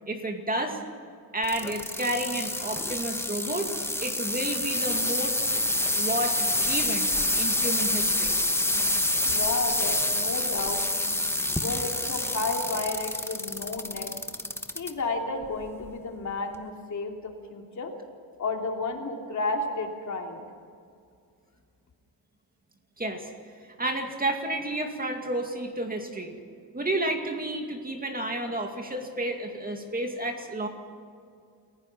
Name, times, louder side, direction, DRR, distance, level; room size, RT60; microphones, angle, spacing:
voice 1, 0.1-0.9 1.3-3.7 4.0-5.5 6.0-6.4 6.6-7.1 7.4-8.4 23.0-23.3 23.6-26.3 26.7-30.7, right 1 dB, 20° right, 3 dB, 2.2 m, -31 dB
sound 1, 1.4-14.9 15.4-15.9 16.5-16.6, left 1 dB, 5° left, 1.1 m, -27 dB
voice 2, 9.2-10.8 11.6-14.1 14.7-17.9 18.4-20.4, left 3 dB, 45° left, 2 dB, 3.0 m, -32 dB
29.0 x 16.0 x 5.9 m, 2.3 s
cardioid pair, 135°, 40 cm